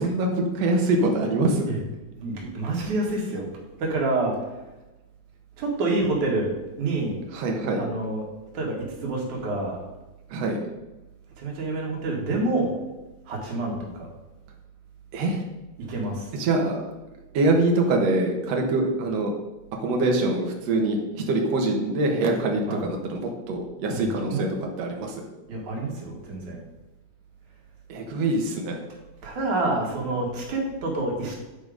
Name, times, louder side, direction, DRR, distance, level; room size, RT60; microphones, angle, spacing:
voice 1, 0.0-1.7 7.3-7.9 10.3-10.6 15.1-15.4 16.3-16.8 17.3-19.3 19.8-22.6 23.0-25.2 27.9-28.8, right 2 dB, 65° right, 1 dB, 2.4 m, -24 dB
voice 2, 2.1-3.5 3.8-4.5 5.6-6.5 6.8-7.2 7.8-8.3 8.5-9.8 11.4-12.7 13.3-14.1 15.8-16.3 22.7-22.8 23.9-24.4 25.5-26.6 29.2-31.4, right 2 dB, 85° right, -1 dB, 3.4 m, -27 dB
10.5 x 5.1 x 5.1 m, 1.1 s
omnidirectional pair, 3.3 m